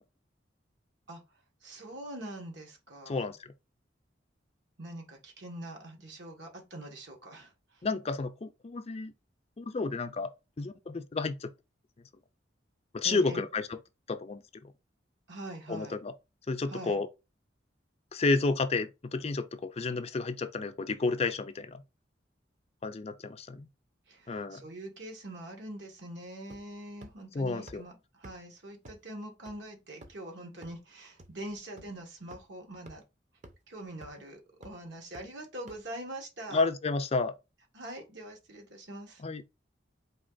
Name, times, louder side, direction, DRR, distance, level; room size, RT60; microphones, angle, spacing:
voice 1, 1.6-3.3 4.8-7.5 13.0-13.4 15.3-16.0 16.7-17.0 24.1-33.0 33.7-36.7 37.7-39.2, right 1 dB, 70° right, 1.5 m, -44 dB
voice 2, 3.1-3.4 7.8-9.1 9.6-10.3 10.6-11.5 12.9-13.7 14.1-14.7 15.7-16.1 16.5-17.1 18.1-21.8 22.8-23.7 24.3-24.6 27.3-27.8 36.5-37.3 39.2-39.4, left 3 dB, 35° left, 0.4 m, -31 dB
sound 1, 26.5-26.8 27.0-27.1 27.7-27.8 28.2-28.3 28.9-29.0 29.5-29.6 30.0-30.2 30.6-30.7 31.2-31.3 31.8-31.9 32.3-32.4 32.9-33.0 33.4-33.5 34.0-34.2 34.6-34.7 35.1-35.2 35.7-35.8, right 1 dB, 40° right, 0.8 m, -48 dB
4.1 x 2.9 x 3.9 m
head